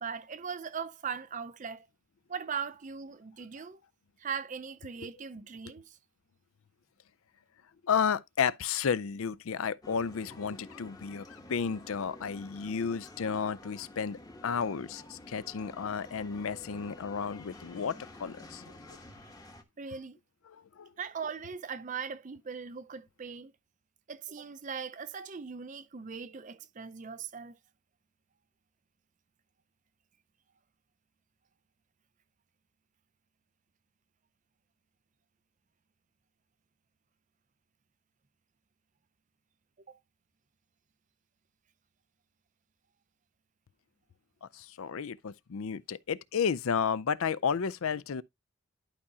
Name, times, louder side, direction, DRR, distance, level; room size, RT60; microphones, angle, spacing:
voice 1, 0.0-1.9 2.3-3.8 4.2-6.0 19.8-20.2 21.0-23.5 24.1-27.5 39.9-40.0, right 6 dB, 35° right, 0.4 m, -39 dB
voice 2, 7.8-11.2 11.5-18.6 20.5-20.9 44.5-48.2, left 6 dB, 65° left, 0.4 m, -32 dB
sound 1, 9.8-19.6, left 2 dB, 15° left, 1.0 m, -50 dB
11.0 x 4.9 x 2.7 m
head